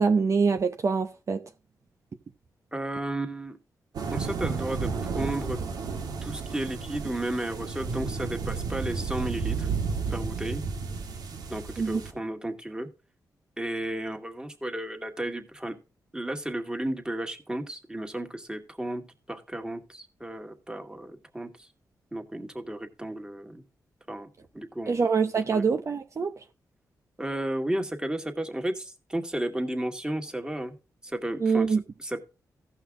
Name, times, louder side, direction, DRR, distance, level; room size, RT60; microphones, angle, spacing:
voice 1, 0.0-1.4 11.8-12.0 24.9-26.3 31.4-31.8, right 5 dB, 50° right, 0.8 m, -24 dB
voice 2, 2.7-3.6 4.1-5.6 6.2-9.7 10.1-10.6 11.5-12.9 13.6-15.7 16.1-19.0 19.3-21.7 22.1-23.6 24.1-24.3 24.5-25.0 25.5-25.7 27.2-30.7 31.0-32.3, right 1 dB, 10° right, 2.0 m, -33 dB
sound 1, 3.9-12.1, right 5 dB, 80° right, 1.7 m, -32 dB
15.5 x 5.7 x 3.7 m
cardioid pair, 75°, 7 cm